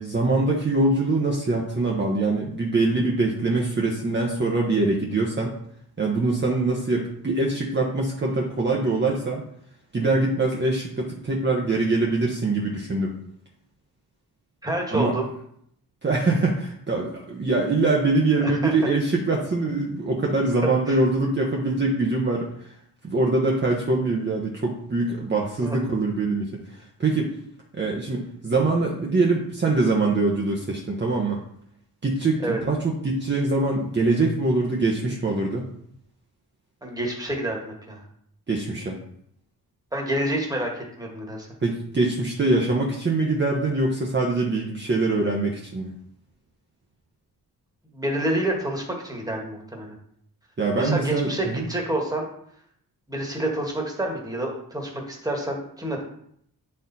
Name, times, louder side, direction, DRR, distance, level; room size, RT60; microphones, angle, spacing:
voice 1, 0.0-5.6 6.0-9.4 9.9-13.1 14.9-15.1 16.0-22.7 23.0-27.3 27.7-31.4 32.0-35.7 38.5-39.0 41.6-45.9 50.6-51.7, right 2 dB, 30° right, -1 dB, 1.1 m, -23 dB
voice 2, 14.6-15.3 18.4-18.7 20.6-21.0 25.6-25.8 32.4-32.6 36.8-38.0 39.9-41.5 47.9-49.9 50.7-52.3 53.1-56.0, right 1 dB, 10° right, 0 dB, 1.7 m, -28 dB
9.1 x 4.4 x 4.1 m, 0.68 s
wide cardioid pair, 130°, 37 cm